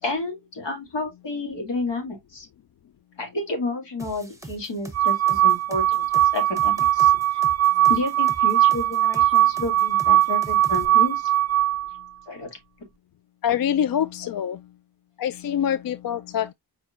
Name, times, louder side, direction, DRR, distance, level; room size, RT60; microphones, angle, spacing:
voice 1, 0.0-2.5 3.2-7.4 7.9-11.3 12.3-12.5, left 2 dB, 85° left, 2.2 m, -31 dB
sound 1, 4.0-10.9, right 3 dB, 5° right, 1.0 m, -41 dB
sound 2, 4.9-12.0, right 12 dB, 40° right, 0.6 m, -20 dB
voice 2, 13.4-14.6 15.2-16.5, left 9 dB, 55° left, 0.4 m, -25 dB
4.9 x 4.2 x 2.5 m
cardioid pair, 60°, 42 cm